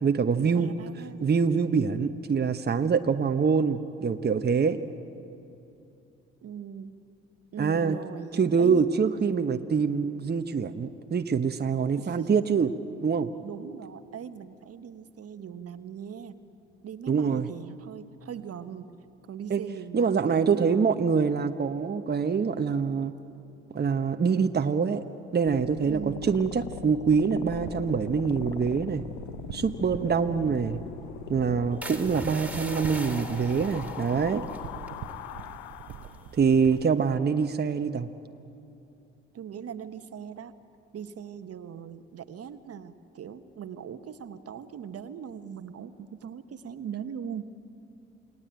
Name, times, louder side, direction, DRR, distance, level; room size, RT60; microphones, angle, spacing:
voice 1, 0.0-0.7 1.2-4.8 7.6-8.0 8.4-12.7 13.0-13.3 17.1-17.5 19.5-19.6 19.9-23.1 23.7-25.0 25.3-29.0 29.5-30.8 31.3-34.4 36.3-38.1, right 6 dB, 30° right, 8 dB, 1.2 m, -25 dB
voice 2, 0.5-1.2 6.4-7.0 7.5-8.9 9.2-9.4 12.0-12.4 13.4-16.4 16.8-19.0 19.3-21.0 25.8-26.3 39.3-40.5 40.9-47.5, right 8 dB, 50° right, 11 dB, 1.3 m, -40 dB
sound 1, 25.4-36.4, left 13 dB, 75° left, 0.8 m, -41 dB
sound 2, 27.5-36.8, right 10 dB, 65° right, 1.1 m, -44 dB
sound 3, 31.8-35.6 35.8-36.2 36.6-37.0, right 1 dB, 5° right, 3.7 m, -41 dB
29.0 x 19.5 x 9.1 m, 2.8 s
hypercardioid pair, 45°, 32 cm